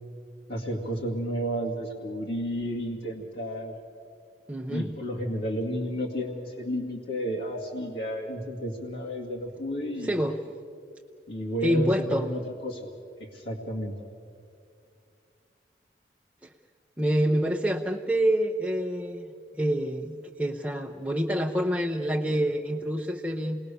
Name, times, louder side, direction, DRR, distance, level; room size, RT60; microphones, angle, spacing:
voice 1, 0.5-3.8 4.7-10.1 11.3-12.9 13.3-13.9, equal, 70° left, -2 dB, 2.1 m, -32 dB
voice 2, 4.5-4.9 10.0-10.4 11.6-12.3 16.4-16.5 17.0-23.6, equal, 10° right, 0 dB, 0.7 m, -27 dB
28.5 x 20.5 x 6.9 m, 2.5 s
head